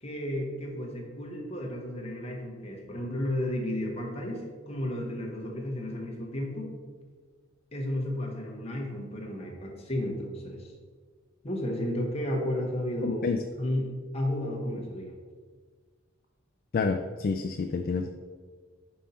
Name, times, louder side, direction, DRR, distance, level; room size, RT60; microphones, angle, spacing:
voice 1, 0.0-6.7 7.7-10.7 11.4-13.3 13.6-15.2, left 1 dB, 30° left, -1 dB, 1.2 m, -33 dB
voice 2, 13.0-13.4 16.7-18.1, left 4 dB, 45° left, 6 dB, 0.3 m, -28 dB
5.5 x 5.3 x 4.2 m, 1.5 s
head